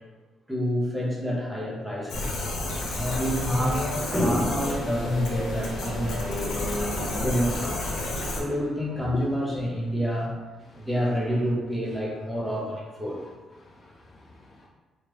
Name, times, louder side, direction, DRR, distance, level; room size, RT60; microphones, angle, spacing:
voice 1, 0.5-2.4 2.9-6.6 7.1-8.0 8.3-10.4 10.7-13.3, equal, 5° right, -4 dB, 0.8 m, -28 dB
sound 1, 2.1-8.4, left 1 dB, 80° left, 0.7 m, -30 dB
voice 2, 13.6-14.7, left 2 dB, 40° left, -1 dB, 0.4 m, -42 dB
3.2 x 2.4 x 3.1 m, 1.3 s
cardioid pair, 90°, 0 cm